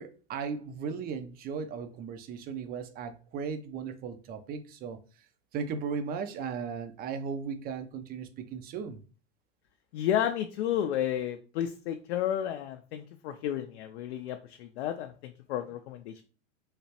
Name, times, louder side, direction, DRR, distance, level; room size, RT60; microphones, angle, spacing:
voice 1, 0.0-5.0 5.5-9.0, right 6 dB, 25° right, 0.4 m, -36 dB
voice 2, 9.9-16.2, left 10 dB, 60° left, 0.5 m, -32 dB
3.3 x 2.9 x 2.8 m
hypercardioid pair, 95°, 36 cm